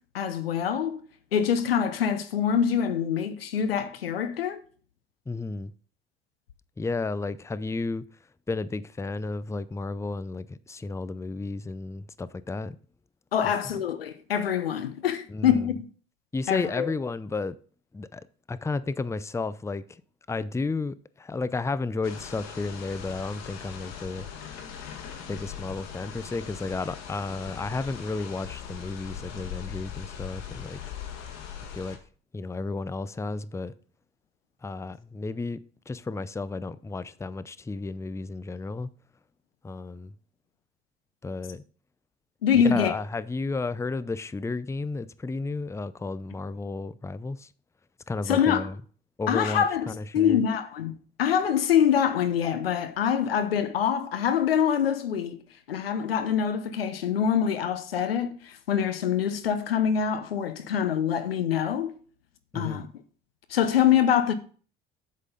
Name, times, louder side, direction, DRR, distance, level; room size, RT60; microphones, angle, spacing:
voice 1, 0.1-1.0 1.3-4.6 13.3-15.9 16.5-16.9 42.4-42.9 48.3-48.7 49.3-50.9 51.2-55.4 55.7-62.0 62.5-62.9 63.5-64.3, left 8 dB, 90° left, 0.8 m, -25 dB
voice 2, 5.3-5.7 6.8-8.0 8.5-12.8 13.4-13.7 15.3-15.7 16.3-17.5 17.9-20.0 20.3-24.3 25.3-30.8 31.7-32.0 32.3-33.7 34.6-35.6 35.9-38.9 39.6-40.1 41.2-41.6 42.5-47.5 48.1-48.8 49.2-50.4 62.5-62.9, left 3 dB, 10° left, 0.5 m, -32 dB
sound 1, 22.0-32.0, left 8 dB, 60° left, 1.8 m, -40 dB
8.1 x 7.6 x 3.9 m
hypercardioid pair, 60°, 29 cm